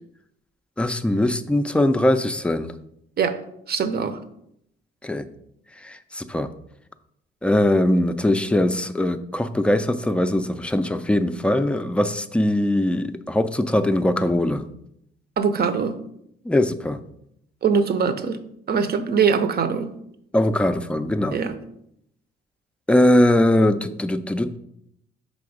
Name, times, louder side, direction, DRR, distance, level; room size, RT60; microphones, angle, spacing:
voice 1, 0.8-2.7 5.0-5.3 5.8-6.5 7.4-14.6 16.4-17.0 20.3-21.4 22.9-24.6, left 1 dB, 5° left, 9 dB, 0.4 m, -21 dB
voice 2, 3.7-4.2 15.4-16.0 17.6-18.4 18.7-19.9 21.3-21.6, right 6 dB, 50° right, 10 dB, 0.7 m, -22 dB
5.3 x 3.8 x 5.0 m, 0.75 s
cardioid pair, 90°, 20 cm